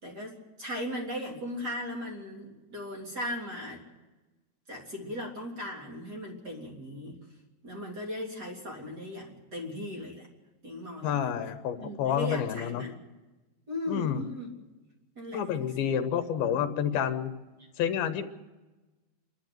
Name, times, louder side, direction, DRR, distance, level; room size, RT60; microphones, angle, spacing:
voice 1, 0.0-3.8 4.7-7.2 7.6-10.3 10.6-12.9 13.7-14.5 15.2-15.9 16.3-17.0, left 1 dB, 25° right, 0 dB, 3.6 m, -38 dB
voice 2, 11.0-12.9 13.9-14.2 15.3-17.3 17.8-18.3, left 9 dB, 75° left, 8 dB, 3.0 m, -29 dB
27.5 x 13.0 x 7.9 m, 1.2 s
omnidirectional pair, 4.5 m